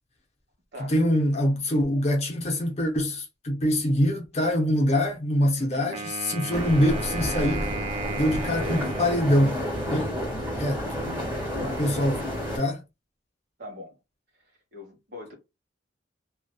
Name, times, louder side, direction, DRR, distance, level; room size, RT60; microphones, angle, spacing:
voice 1, 0.8-7.7 8.2-10.2 10.6-10.9 11.6-12.2 12.6-12.8, equal, 35° left, 0.5 m, -24 dB
voice 2, 5.6-5.9 11.6-11.8 13.6-14.0 14.7-15.3, left 2 dB, 55° right, 1.1 m, -41 dB
Wind instrument woodwind instrument, 5.9-10.2, right 3 dB, 30° right, 0.4 m, -36 dB
sound 1, 6.5-12.6, equal, 10° right, 1.2 m, -30 dB
2.6 x 2.2 x 2.2 m
head